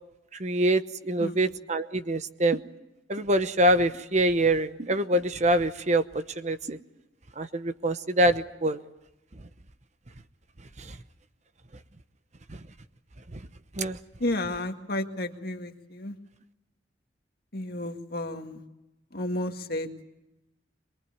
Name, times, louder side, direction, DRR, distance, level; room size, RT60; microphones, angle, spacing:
voice 1, 0.4-2.6 3.1-6.0 6.4-6.8 7.4-8.8 10.8-11.0 13.3-13.4 13.8-14.0, right 1 dB, 40° right, 11 dB, 0.9 m, -25 dB
voice 2, 14.2-16.2 17.5-18.6 19.1-19.9, left 1 dB, 55° left, 5 dB, 2.0 m, -32 dB
23.0 x 23.0 x 9.5 m, 0.94 s
head